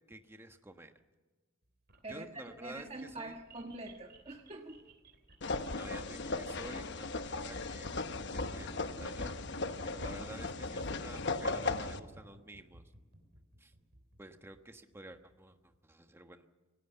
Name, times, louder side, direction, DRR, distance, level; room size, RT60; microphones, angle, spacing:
voice 1, 0.1-0.9 2.1-3.4 5.8-7.9 8.3-9.3 9.8-12.8 13.6-13.7 14.2-16.5, right 1 dB, 10° right, 6 dB, 1.3 m, -51 dB
sound 1, 1.6-15.8, right 2 dB, 50° right, 3.2 m, -59 dB
voice 2, 2.0-4.8 5.6-5.8, right 2 dB, 30° right, 3 dB, 1.4 m, -45 dB
sound 2, 5.4-12.0, left 3 dB, 60° left, 1.1 m, -37 dB
27.0 x 17.5 x 7.0 m, 1.3 s
head